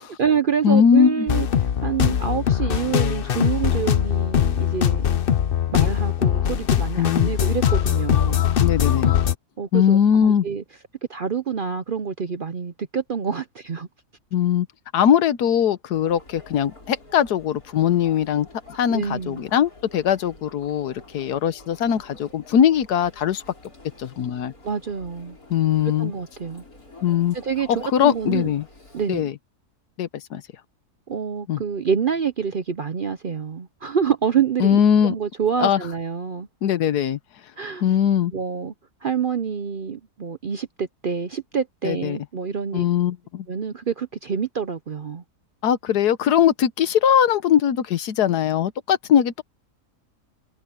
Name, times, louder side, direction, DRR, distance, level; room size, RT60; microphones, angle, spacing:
voice 1, 0.0-5.0 5.7-8.4 9.6-10.6 11.1-13.9 18.9-19.5 24.6-25.4 25.8-26.6 27.3-28.5 28.9-29.3 31.1-36.5 37.6-37.8 38.3-38.7 39.0-42.8 43.5-45.2, right 7 dB, 50° right, 0.6 m, -27 dB
voice 2, 0.6-1.3 5.8-5.9 7.0-7.3 8.6-9.1 9.7-10.5 14.3-14.7 14.9-23.4 24.0-24.5 25.5-26.1 27.0-27.4 27.7-28.6 29.1-29.3 30.0-30.4 31.5-31.6 34.6-35.1 35.6-35.8 36.6-37.2 37.8-38.3 41.8-42.2 42.7-43.5 45.6-49.4, left 9 dB, 90° left, 1.5 m, -20 dB
sound 1, 1.3-9.3, left 9 dB, 50° left, 0.7 m, -21 dB
Chatter, 15.9-29.2, left 2 dB, 65° left, 7.3 m, -48 dB
omnidirectional pair, 1.7 m